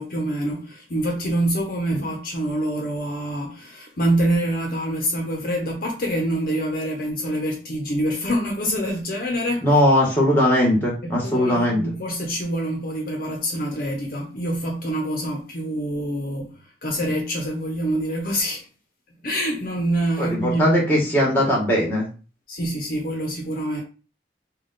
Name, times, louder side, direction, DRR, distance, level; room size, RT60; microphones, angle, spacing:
voice 1, 0.0-9.7 11.0-16.5 16.8-18.6 19.2-20.8 22.5-23.8, right 1 dB, 50° left, 0.7 m, -26 dB
voice 2, 9.6-11.8 20.2-22.1, equal, 10° left, 1.3 m, -19 dB
3.4 x 2.3 x 3.9 m
head